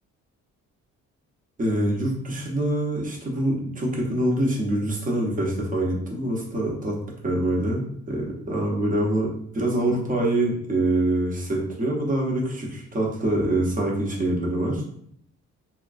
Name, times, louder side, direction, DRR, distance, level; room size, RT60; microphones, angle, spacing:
voice 1, 1.6-7.0 7.2-14.9, right 1 dB, 25° right, -1 dB, 0.8 m, -25 dB
2.8 x 2.2 x 2.5 m, 0.67 s
cardioid pair, 90°, 30 cm